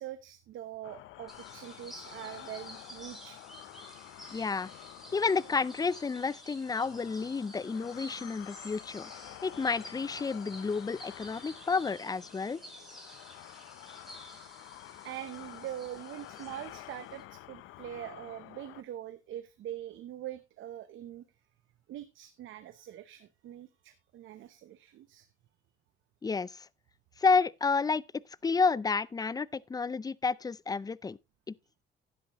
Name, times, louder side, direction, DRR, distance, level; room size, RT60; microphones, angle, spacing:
voice 1, 0.0-3.4 15.0-21.2 21.9-25.3, right 12 dB, 80° right, 0.9 m, -43 dB
sound 1, 0.8-18.8, left 15 dB, 90° left, 0.6 m, -49 dB
sound 2, 1.3-17.2, right 1 dB, ahead, 3.9 m, -52 dB
voice 2, 4.3-4.7 5.1-9.1 9.4-12.6 26.2-26.7 27.2-28.0 28.4-31.2 31.5-31.6, left 4 dB, 20° left, 0.4 m, -30 dB
12.0 x 10.0 x 3.0 m
cardioid pair, 90°, 20 cm